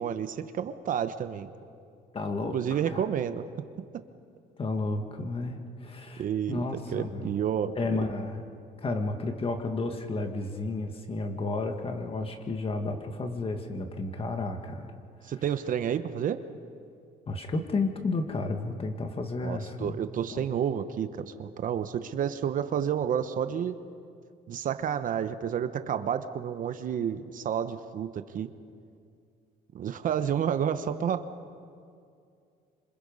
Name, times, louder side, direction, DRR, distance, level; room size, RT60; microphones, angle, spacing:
voice 1, 0.0-1.5 2.5-3.4 6.2-6.6 6.9-8.0 15.2-16.4 19.4-23.8 24.5-28.5 29.7-31.3, right 8 dB, 50° right, 10 dB, 1.0 m, -30 dB
voice 2, 2.1-3.0 4.6-7.3 7.8-8.4 8.8-14.9 15.2-15.3 17.3-19.9 20.3-20.4, left 3 dB, 35° left, 5 dB, 1.9 m, -32 dB
27.5 x 26.0 x 5.5 m, 2.4 s
cardioid pair, 110°, 17 cm